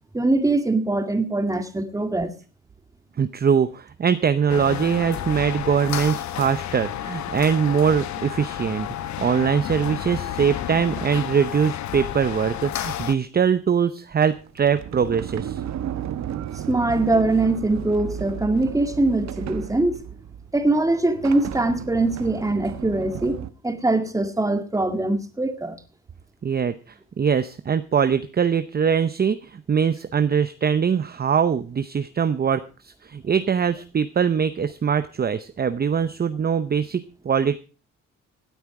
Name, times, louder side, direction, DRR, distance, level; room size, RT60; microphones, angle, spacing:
voice 1, 0.1-2.3 16.7-20.0 20.5-25.8, right 2 dB, 10° right, 1.9 m, -22 dB
voice 2, 3.2-15.6 26.4-37.6, right 7 dB, 30° right, 0.8 m, -22 dB
sound 1, 4.5-13.1, left 11 dB, 65° left, 1.0 m, -31 dB
Sliding door, 14.3-23.5, right 10 dB, 65° right, 1.0 m, -34 dB
17.0 x 9.2 x 4.8 m
cardioid pair, 90°, 30 cm